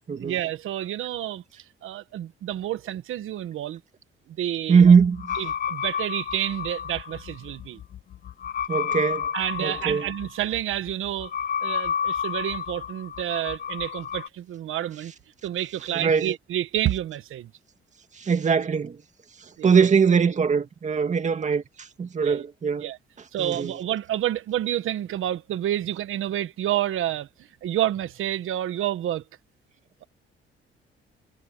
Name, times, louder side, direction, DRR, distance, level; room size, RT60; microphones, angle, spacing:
voice 1, 0.1-3.8 4.3-4.9 5.3-7.8 9.3-11.3 11.6-15.1 15.4-17.5 19.6-19.7 22.2-22.4 22.8-23.0 23.3-27.3 27.6-29.2, right 12 dB, 75° right, 1.3 m, -29 dB
voice 2, 4.7-5.3 8.7-9.3 9.6-10.1 15.9-16.3 18.2-19.0 19.6-21.6 22.0-22.9 23.4-23.7, right 6 dB, 35° right, 2.1 m, -21 dB
sound 1, 4.8-14.3, left 8 dB, 40° left, 0.6 m, -31 dB
cardioid pair, 135°, 21 cm